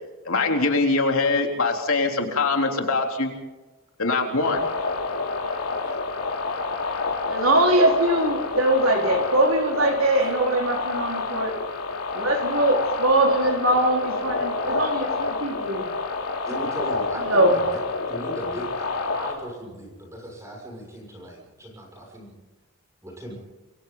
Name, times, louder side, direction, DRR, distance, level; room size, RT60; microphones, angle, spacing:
voice 1, 0.3-3.3 4.0-4.6, left 3 dB, 70° left, 3 dB, 3.6 m, -23 dB
sound 1, 4.4-19.3, left 3 dB, 85° left, 3.3 m, -28 dB
voice 2, 7.3-11.5 12.1-15.9 17.3-17.6, right 1 dB, 65° right, 2 dB, 4.4 m, -22 dB
voice 3, 16.4-17.8 18.1-22.3 23.0-23.3, right 1 dB, 15° right, -1 dB, 6.5 m, -37 dB
28.0 x 24.0 x 4.0 m, 1.2 s
head